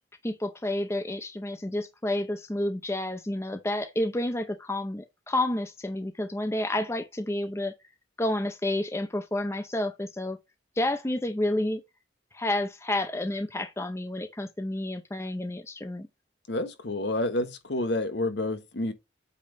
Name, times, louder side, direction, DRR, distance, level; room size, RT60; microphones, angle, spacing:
voice 1, 0.2-7.7 8.2-10.4 10.8-11.8 12.3-16.1, left 1 dB, 15° left, 0.6 m, -30 dB
voice 2, 16.5-18.9, left 2 dB, 65° left, 1.1 m, -29 dB
8.4 x 3.0 x 5.4 m
head